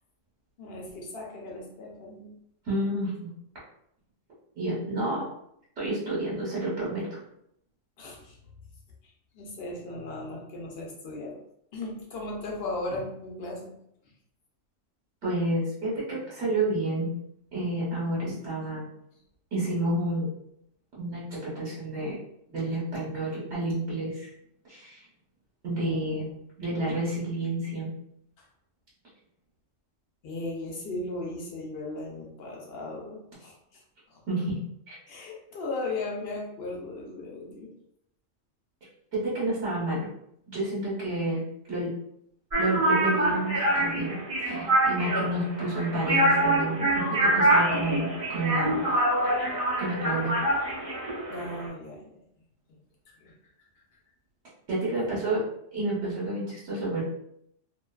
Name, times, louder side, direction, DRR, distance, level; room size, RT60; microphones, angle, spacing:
voice 1, 0.6-2.4 8.0-8.4 9.3-11.4 11.7-13.7 25.8-26.4 30.2-33.5 34.1-34.2 35.1-37.7 51.3-52.2 53.1-53.3 54.9-55.2, left 2 dB, 60° left, -1 dB, 0.8 m, -37 dB
voice 2, 2.7-3.3 4.6-5.2 5.8-7.1 15.2-17.1 17.5-18.9 19.5-20.3 21.0-22.2 22.5-24.3 24.7-25.0 25.6-26.3 26.6-27.9 34.3-34.6 39.1-40.0 40.5-41.4 41.7-41.9 42.6-46.8 47.2-48.8 49.8-50.3 54.7-55.4 55.7-57.0, right 1 dB, 60° right, -7 dB, 1.0 m, -29 dB
sound 1, 42.5-51.7, right 1 dB, 35° right, 0.6 m, -25 dB
2.5 x 2.3 x 2.2 m, 0.74 s
omnidirectional pair, 1.3 m